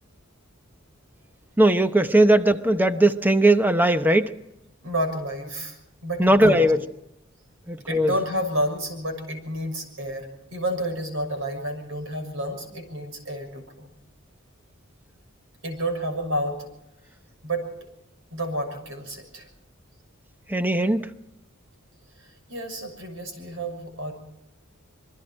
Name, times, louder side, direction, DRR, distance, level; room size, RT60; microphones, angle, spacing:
voice 1, 1.6-4.3 6.2-6.8 7.7-8.1 20.5-21.1, right 1 dB, 10° right, 9 dB, 0.8 m, -19 dB
voice 2, 4.8-5.8 6.0-6.7 7.9-13.9 15.6-16.6 17.4-17.7 18.3-19.5 22.5-24.1, right 1 dB, 70° right, 6 dB, 6.3 m, -30 dB
27.0 x 22.5 x 4.4 m, 0.84 s
head